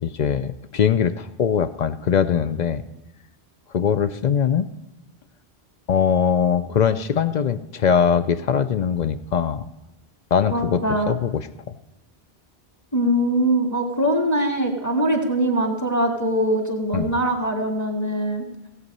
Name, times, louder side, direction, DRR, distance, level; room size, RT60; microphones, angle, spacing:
voice 1, 0.0-2.8 3.7-4.7 5.9-9.7 10.3-10.8 11.1-11.7 16.9-17.1, left 7 dB, 55° left, 12 dB, 0.5 m, -21 dB
voice 2, 10.5-11.1 12.9-18.4, right 1 dB, 15° left, 2 dB, 1.8 m, -22 dB
16.5 x 8.2 x 5.4 m, 0.95 s
omnidirectional pair, 1.1 m